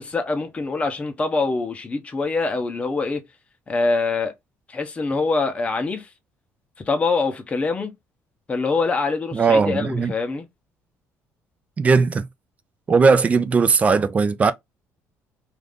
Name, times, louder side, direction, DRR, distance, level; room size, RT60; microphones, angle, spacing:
voice 1, 0.0-3.2 3.7-4.3 4.7-6.1 6.9-7.9 8.5-10.5, left 3 dB, 20° left, 0.7 m, -24 dB
voice 2, 9.3-10.1 11.8-12.3 12.9-14.5, right 4 dB, 25° right, 0.4 m, -18 dB
2.5 x 2.5 x 3.5 m
cardioid pair, 135°, 6 cm